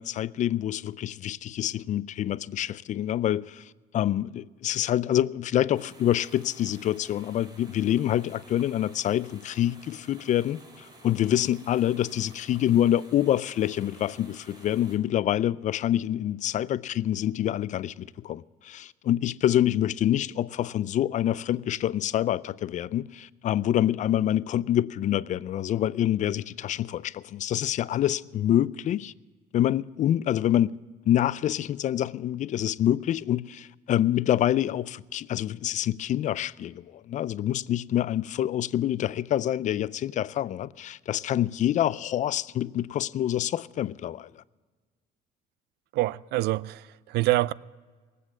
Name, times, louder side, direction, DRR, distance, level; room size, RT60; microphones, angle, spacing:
voice 1, 0.0-29.1 29.5-30.8 31.1-44.3, left 11 dB, 45° left, 0.4 m, -26 dB
sound 1, 5.7-15.0, right 2 dB, 25° right, 3.0 m, -53 dB
voice 2, 45.9-47.5, right 18 dB, 75° right, 0.4 m, -26 dB
19.0 x 8.3 x 7.3 m
cardioid pair, 110°, 17 cm